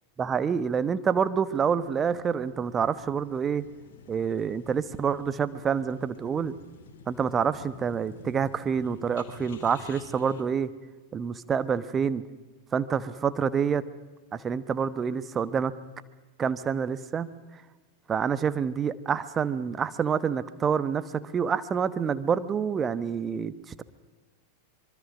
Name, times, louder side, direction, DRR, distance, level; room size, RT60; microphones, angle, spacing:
voice 1, 0.2-3.6 4.1-6.5 7.1-10.7 11.1-12.2 12.7-13.8 14.3-15.7 16.4-17.3 18.1-23.8, right 7 dB, 20° right, 15 dB, 1.1 m, -27 dB
sound 1, 1.6-10.4, left 6 dB, 55° left, 2.6 m, -49 dB
25.5 x 23.5 x 6.2 m, 1.2 s
figure-of-eight pair, 90°, 0 cm